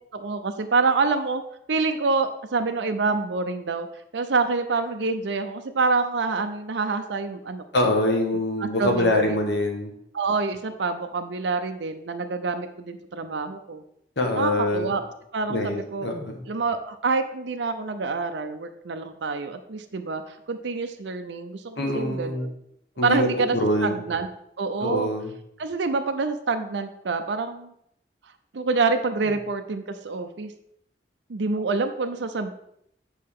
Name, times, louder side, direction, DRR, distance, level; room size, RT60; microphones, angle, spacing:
voice 1, 0.1-1.4 1.7-3.9 4.1-7.6 8.6-9.4 10.1-13.8 14.3-15.0 15.3-16.1 16.5-22.5 23.0-24.3 24.6-25.1 25.6-27.7 28.5-30.5 31.3-32.5, right 4 dB, 90° right, 7 dB, 0.6 m, -26 dB
voice 2, 7.7-9.9 14.2-14.9 15.5-16.4 21.8-22.5 23.0-24.0 24.8-25.3, left 1 dB, 80° left, 2 dB, 1.4 m, -24 dB
8.6 x 5.3 x 3.7 m, 0.75 s
head